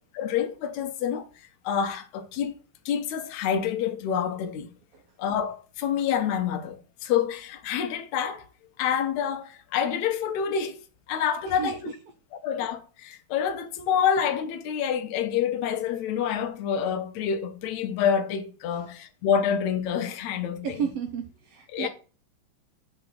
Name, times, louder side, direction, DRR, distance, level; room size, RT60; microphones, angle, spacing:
voice 1, 0.2-1.3 1.6-2.5 2.9-4.7 5.2-8.5 8.8-10.8 11.1-11.9 12.4-20.7 21.7-21.9, left 8 dB, 75° left, 2.1 m, -27 dB
voice 2, 11.5-11.9 18.7-18.9 20.6-21.9, right 7 dB, 70° right, 1.6 m, -33 dB
5.9 x 3.9 x 5.9 m
omnidirectional pair, 3.4 m